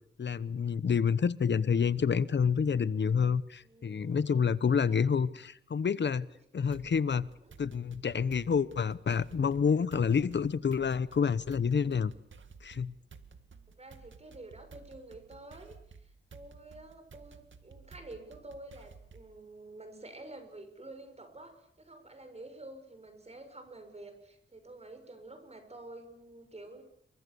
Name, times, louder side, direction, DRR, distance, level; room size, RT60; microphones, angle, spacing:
voice 1, 0.2-6.3 6.5-7.3 7.6-12.1 12.6-12.9, left 6 dB, 70° left, 17 dB, 1.0 m, -28 dB
voice 2, 3.6-5.3 6.3-7.0 7.4-7.5 13.7-26.8, right 2 dB, 35° right, 7 dB, 6.4 m, -50 dB
sound 1, 6.7-19.4, right 5 dB, 85° right, 2.2 m, -54 dB
28.0 x 24.5 x 7.0 m, 0.67 s
wide cardioid pair, 115°, 19 cm